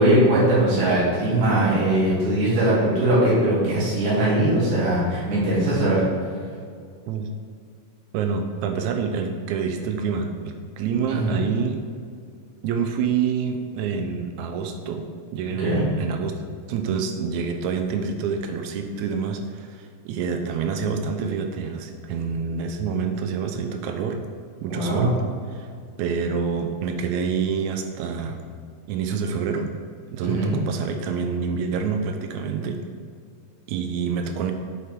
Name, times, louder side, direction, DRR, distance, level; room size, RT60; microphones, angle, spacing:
voice 1, 0.0-6.0 11.1-11.4 15.6-15.9 24.7-25.1 30.2-30.6, right 1 dB, 65° right, -9 dB, 3.9 m, -20 dB
voice 2, 8.1-11.8 12.6-16.4 16.7-24.2 24.6-25.2 25.5-25.7 26.0-28.4 28.9-29.7 30.1-32.8 33.7-34.5, right 6 dB, 85° right, 5 dB, 1.6 m, -27 dB
8.2 x 7.4 x 3.6 m, 2.2 s
omnidirectional pair, 3.9 m